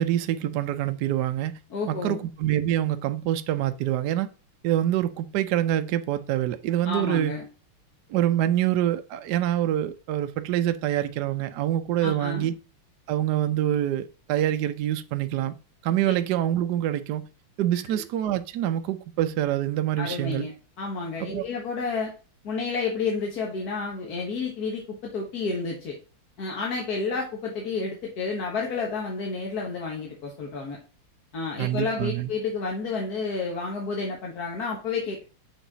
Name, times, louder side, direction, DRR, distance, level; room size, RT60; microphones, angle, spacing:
voice 1, 0.0-1.6 1.9-4.3 4.6-7.4 8.1-12.5 13.1-15.5 15.8-17.3 17.6-20.5 21.3-21.5 31.6-32.3, right 12 dB, 70° right, 1.0 m, -26 dB
voice 2, 1.7-2.2 6.8-7.4 12.0-12.5 17.9-18.0 20.0-22.1 22.4-26.0 26.4-30.8 31.3-35.2, left 4 dB, 50° left, 1.6 m, -30 dB
6.3 x 4.1 x 3.9 m
omnidirectional pair, 2.4 m